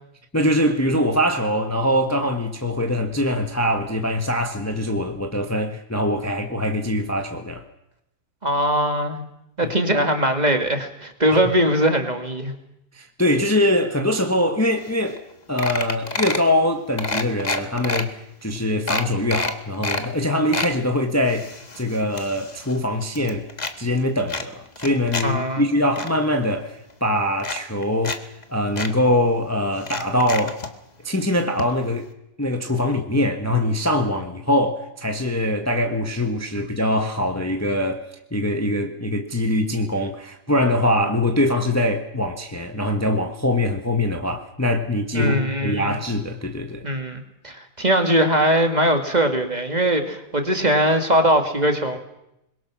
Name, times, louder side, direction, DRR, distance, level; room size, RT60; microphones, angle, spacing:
voice 1, 0.3-7.6 9.6-9.7 12.9-15.2 15.5-23.5 23.8-28.2 28.5-30.6 31.0-32.1 32.4-38.0 38.3-46.8, left 1 dB, 10° left, 1.3 m, -23 dB
voice 2, 8.4-9.2 9.6-12.5 25.2-25.6 45.1-46.0 46.8-52.0, right 1 dB, 25° right, 2.2 m, -21 dB
sound 1, 14.9-15.0 15.2-15.3 15.6-16.5 17.0-18.0 18.5-18.6 18.9-20.1 20.3-20.7 21.3-22.8 23.0-23.7 24.3-25.3 25.6-26.1 26.9-27.0 27.4-28.2 28.4-28.5 28.8-28.9 29.8-30.7 31.6-31.7 32.0-32.1, left 3 dB, 30° left, 1.5 m, -28 dB
24.5 x 22.0 x 6.2 m
omnidirectional pair, 1.7 m